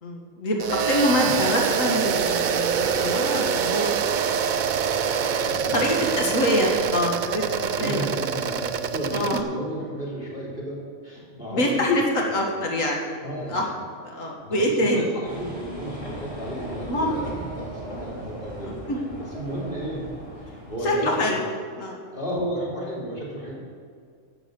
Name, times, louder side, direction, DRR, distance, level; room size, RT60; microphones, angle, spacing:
voice 1, 0.0-4.0 5.1-5.3 5.7-8.0 9.1-9.4 11.5-13.2 13.5-13.7 14.0-15.1 16.9-17.4 18.6-19.0 20.8-21.4 21.8-22.0, left 1 dB, 85° left, 0 dB, 1.9 m, -25 dB
sound 1, 0.6-9.4, right 7 dB, 55° right, 0.5 m, -25 dB
voice 2, 1.0-1.4 5.4-6.3 7.7-12.3 13.2-13.6 14.4-20.1 20.4-21.4 22.1-23.5, equal, 40° left, -5 dB, 3.7 m, -33 dB
sound 2, 15.2-20.9, right 1 dB, 25° left, 3.6 m, -38 dB
12.0 x 7.2 x 6.9 m, 2.3 s
omnidirectional pair, 1.3 m